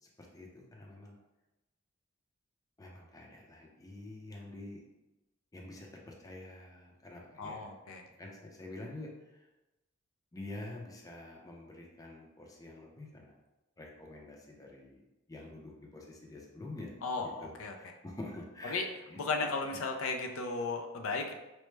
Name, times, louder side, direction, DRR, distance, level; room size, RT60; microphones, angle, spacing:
voice 1, 0.0-1.2 2.8-4.8 5.5-7.7 8.1-9.4 10.3-13.3 13.8-19.8, left 2 dB, 15° left, -1 dB, 0.5 m, -47 dB
voice 2, 7.4-8.0 17.0-17.8 18.6-18.9 19.2-21.3, left 3 dB, 75° left, 4 dB, 0.4 m, -35 dB
4.4 x 2.0 x 3.2 m, 1.0 s
head